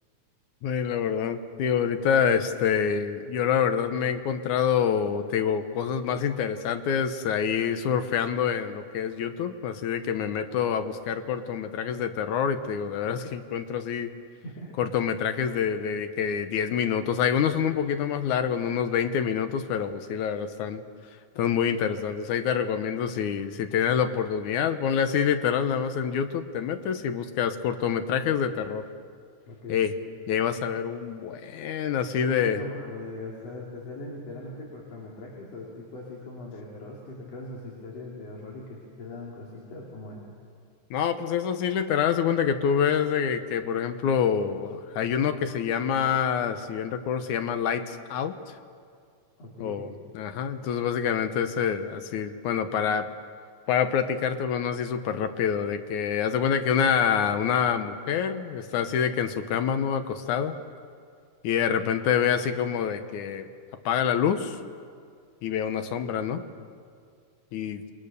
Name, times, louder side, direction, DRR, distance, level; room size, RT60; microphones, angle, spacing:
voice 1, 0.6-14.1 14.8-20.8 21.4-28.8 29.7-29.9 30.3-32.6 40.9-48.4 49.6-53.1 53.7-60.6 61.4-63.5 63.9-64.6 65.4-66.4 67.5-67.8, left 7 dB, 75° left, 9 dB, 2.4 m, -26 dB
voice 2, 14.4-14.8 29.5-29.8 32.2-40.3 49.4-49.9, left 2 dB, 55° left, -3 dB, 3.9 m, -40 dB
28.0 x 22.0 x 6.8 m, 2.2 s
omnidirectional pair, 3.6 m